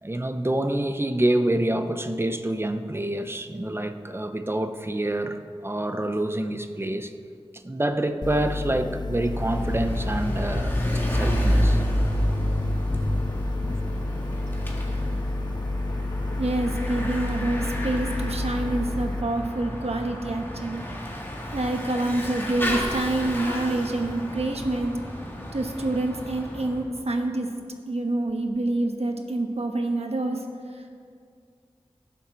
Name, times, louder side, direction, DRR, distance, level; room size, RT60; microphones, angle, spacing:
voice 1, 0.0-7.1 7.6-10.8 11.1-11.8 13.6-13.8, right 1 dB, 25° right, 8 dB, 0.8 m, -27 dB
sound 1, 8.2-19.2, left 2 dB, 45° left, 0.4 m, -30 dB
Bicycle / Mechanisms, 9.2-26.8, equal, 20° left, 2.0 m, -30 dB
voice 2, 16.4-20.9 21.5-25.0 25.5-27.5 27.9-30.4 30.7-30.9, right 2 dB, 80° right, 3 dB, 1.2 m, -27 dB
18.5 x 7.4 x 4.0 m, 2.2 s
wide cardioid pair, 50°, 11 cm